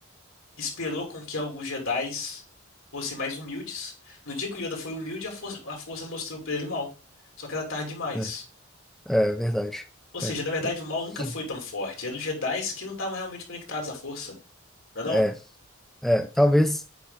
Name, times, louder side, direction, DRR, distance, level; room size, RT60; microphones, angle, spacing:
voice 1, 0.6-2.4 2.9-6.9 7.4-8.4 10.1-14.3 14.9-15.2, left 3 dB, 75° left, 2.9 m, -32 dB
voice 2, 9.1-9.9 10.2-10.3 11.2-11.3 15.1-15.3 16.0-16.8, equal, ahead, 0.3 m, -23 dB
8.4 x 4.6 x 3.6 m
head